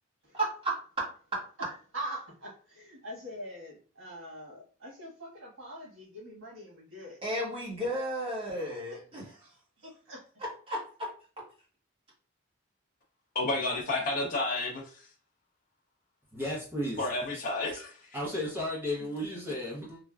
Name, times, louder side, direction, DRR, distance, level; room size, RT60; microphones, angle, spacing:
voice 1, 0.3-1.0 7.2-9.4 10.4-11.1, right 1 dB, 30° right, 1.1 m, -33 dB
voice 2, 1.9-7.2 8.9-10.2 19.0-19.1 19.5-19.6, right 1 dB, 90° right, 1.4 m, -44 dB
voice 3, 13.3-15.1 17.0-18.1, left 2 dB, 40° left, 0.6 m, -31 dB
voice 4, 16.3-17.1 17.3-17.4 17.7-17.8 18.1-20.0, left 1 dB, 10° right, 0.7 m, -34 dB
3.2 x 2.1 x 2.3 m
head